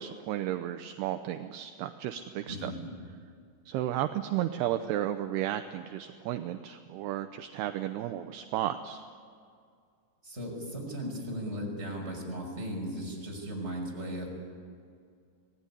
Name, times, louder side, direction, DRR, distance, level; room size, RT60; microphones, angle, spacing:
voice 1, 0.0-2.7 3.7-9.0, right 12 dB, 80° right, 8 dB, 2.5 m, -33 dB
voice 2, 2.5-2.9 10.2-14.3, equal, 15° right, -1 dB, 5.7 m, -37 dB
26.0 x 18.5 x 9.9 m, 2.2 s
omnidirectional pair, 5.2 m